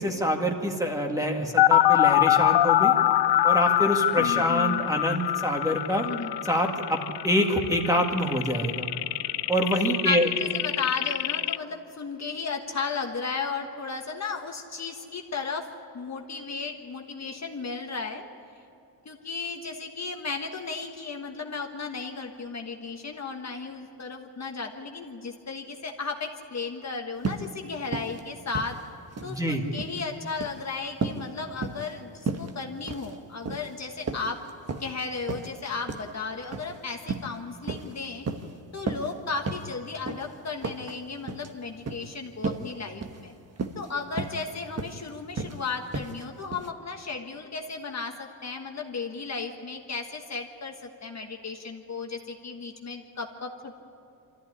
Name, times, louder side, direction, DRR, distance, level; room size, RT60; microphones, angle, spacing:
voice 1, 0.0-2.9 3.4-6.1 6.5-8.9 9.5-10.5 29.2-29.7, equal, 10° right, 2 dB, 2.1 m, -26 dB
sound 1, 1.6-11.6, left 14 dB, 80° left, 0.6 m, -24 dB
voice 2, 4.2-4.9 6.0-6.3 10.0-15.7 15.9-18.2 19.0-28.8 29.2-34.4 34.8-38.3 38.7-43.3 43.7-53.7, left 4 dB, 40° left, 3 dB, 1.4 m, -35 dB
sound 2, 27.2-27.5 27.9-28.2 28.5-29.4 29.7-30.0 30.3-30.6 31.0-31.2 31.6-31.9 32.3-32.5 32.8-33.1 33.4-33.7 34.1-34.9 35.3-35.5 35.9-36.1 36.5-36.7 37.1-37.3 37.6-37.9 38.3-38.5 38.9-39.1 39.5-39.7 40.1-40.2 40.6-41.0 41.3-41.5 41.9-42.0 42.4-42.7 43.0-43.2 43.6-43.9 44.2-44.4 44.8-45.0 45.4-45.6 45.9-46.2 46.5-46.7, right 4 dB, 35° right, 1.2 m, -33 dB
25.0 x 14.0 x 9.9 m, 2.6 s
wide cardioid pair, 135°, 41 cm